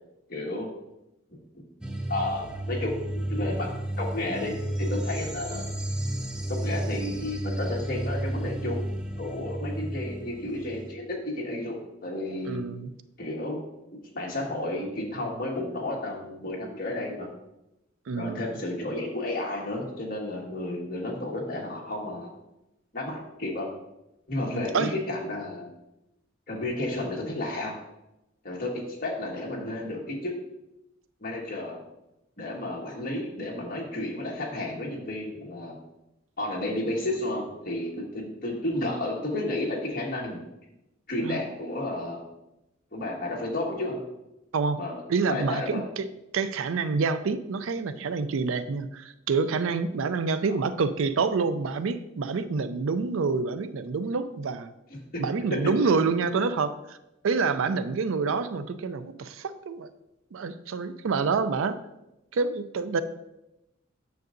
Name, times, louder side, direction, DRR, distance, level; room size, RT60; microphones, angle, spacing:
voice 1, 0.3-0.7 2.1-3.7 4.0-5.6 6.5-8.9 9.2-12.6 13.2-13.6 13.9-17.3 18.2-22.3 22.9-23.7 24.3-25.7 26.5-27.8 28.4-30.4 31.2-31.8 32.4-35.8 36.4-40.4 41.1-42.2 42.9-44.0 44.8-45.8 50.5-50.6 55.1-55.2 55.5-55.7, left 1 dB, 45° left, -2 dB, 1.6 m, -32 dB
sound 1, 1.8-10.9, right 1 dB, 5° right, 0.4 m, -32 dB
voice 2, 12.5-12.9 18.1-18.5 24.5-24.9 41.2-41.4 44.5-44.8 45.1-46.1 46.3-54.7 55.2-56.7 57.2-59.9 60.3-61.8 62.3-63.0, right 4 dB, 75° right, 12 dB, 0.4 m, -27 dB
9.3 x 6.5 x 2.6 m, 0.92 s
head